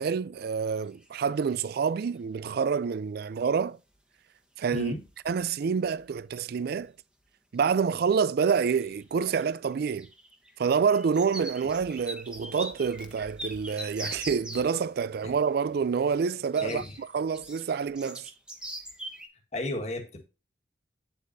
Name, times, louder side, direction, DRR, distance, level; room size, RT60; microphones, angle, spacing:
voice 1, 0.0-3.8 4.6-4.9 5.3-6.9 7.5-10.1 10.6-18.3, right 6 dB, 55° right, 0.4 m, -27 dB
sound 1, 0.8-1.1 1.4-2.0 3.9-4.0 4.7-4.8 5.0-5.4 5.7-6.3 6.8-6.9 8.0-8.4 8.7-14.7 16.5-19.3, right 1 dB, 5° right, 1.1 m, -42 dB
voice 2, 4.7-5.0 15.2-15.4 16.6-16.9 19.5-20.2, left 2 dB, 40° left, 1.6 m, -33 dB
8.6 x 8.1 x 2.6 m
head